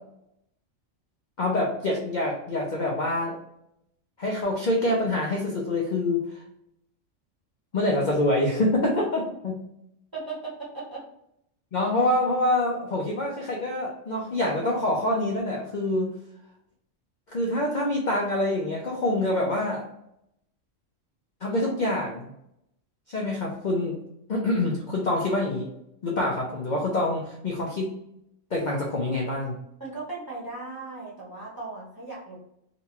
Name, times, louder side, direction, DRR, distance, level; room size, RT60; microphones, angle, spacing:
voice 1, 1.4-3.4 4.2-6.4 7.7-9.6 11.7-16.1 17.3-19.8 21.4-22.3 23.1-24.0 24.3-25.7 26.0-27.9 28.5-29.6, left 1 dB, 50° left, -2 dB, 0.6 m, -26 dB
voice 2, 10.1-11.0 29.8-32.4, right 3 dB, 20° right, -6 dB, 0.9 m, -37 dB
3.8 x 2.3 x 2.8 m, 0.78 s
omnidirectional pair, 1.4 m